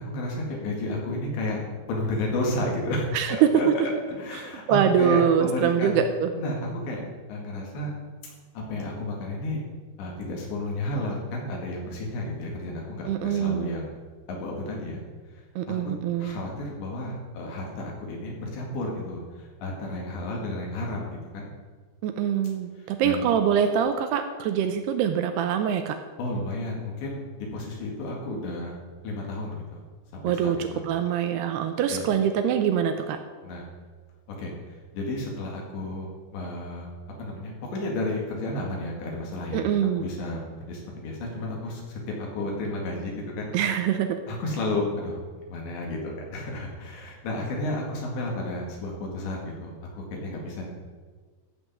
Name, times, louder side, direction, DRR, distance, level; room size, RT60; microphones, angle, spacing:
voice 1, 0.0-1.6 1.9-3.7 4.2-6.0 6.3-7.0 7.3-7.9 8.5-9.6 10.0-13.9 14.3-15.0 15.3-15.9 16.2-21.5 22.8-23.2 26.2-28.8 29.0-29.8 30.1-30.8 31.9-32.1 33.4-33.7 34.4-36.9 37.2-39.6 40.0-43.5 44.3-45.2 45.5-50.7, left 1 dB, 75° left, -1 dB, 4.2 m, -32 dB
voice 2, 3.1-3.7 4.4-6.3 13.1-13.7 15.6-16.3 22.0-26.0 30.2-33.2 39.5-40.0 43.5-44.2, right 8 dB, 85° right, 7 dB, 2.4 m, -24 dB
14.5 x 5.4 x 7.3 m, 1.4 s
omnidirectional pair, 5.3 m